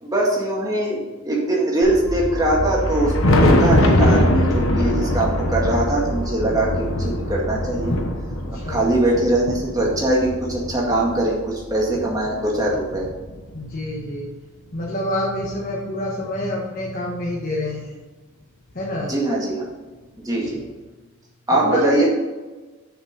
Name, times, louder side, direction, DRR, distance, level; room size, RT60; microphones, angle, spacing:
voice 1, 0.0-7.9 8.7-13.1 19.1-19.6 20.2-20.6 21.5-22.1, right 1 dB, 15° right, -3 dB, 1.9 m, -21 dB
sound 1, 1.8-13.7, equal, 85° right, 1.7 m, -28 dB
Thunder, 2.7-11.3 11.9-13.6 14.8-14.9 15.4-15.5 17.4-17.5 18.9-19.0 20.5-20.6, left 1 dB, 70° left, 1.2 m, -23 dB
voice 2, 8.5-8.8 13.5-14.3 14.7-17.9 18.7-19.1 20.4-20.5 21.5-22.1, left 1 dB, 40° left, -4 dB, 1.4 m, -27 dB
6.9 x 6.6 x 5.5 m, 1.2 s
head